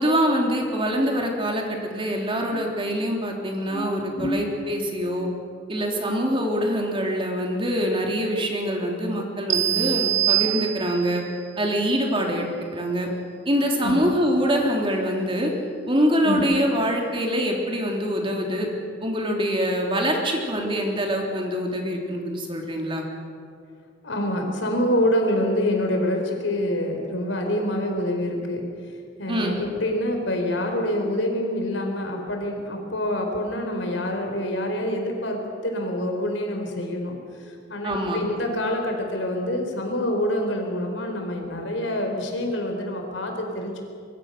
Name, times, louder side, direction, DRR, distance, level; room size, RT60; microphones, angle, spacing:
voice 1, 0.0-5.3 5.7-11.2 11.6-13.1 13.5-15.5 15.9-18.7 19.0-23.1 29.3-29.6 37.8-38.2, equal, 30° right, 1 dB, 3.5 m, -24 dB
sound 1, 9.5-11.2, right 13 dB, 90° right, 1.5 m, -23 dB
voice 2, 24.0-28.6 29.2-37.2 37.4-43.8, left 1 dB, 75° left, 3 dB, 4.6 m, -26 dB
25.0 x 23.0 x 6.8 m, 2.3 s
head